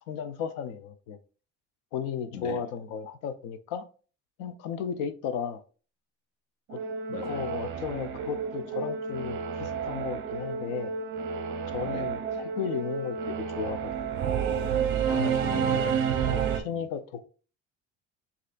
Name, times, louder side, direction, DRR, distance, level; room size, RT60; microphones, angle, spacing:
voice 1, 0.1-1.2 1.9-3.8 4.4-5.6 6.7-6.8 7.2-10.9 11.7-14.4 16.3-17.3, left 7 dB, 85° left, 0.7 m, -35 dB
Singing / Musical instrument, 6.7-16.6, right 7 dB, 40° right, 0.7 m, -30 dB
voice 2, 7.1-7.4 11.8-12.1 15.0-16.1 16.7-16.9, left 5 dB, 55° left, 1.0 m, -38 dB
6.6 x 2.8 x 2.4 m
cardioid pair, 165°, 30 cm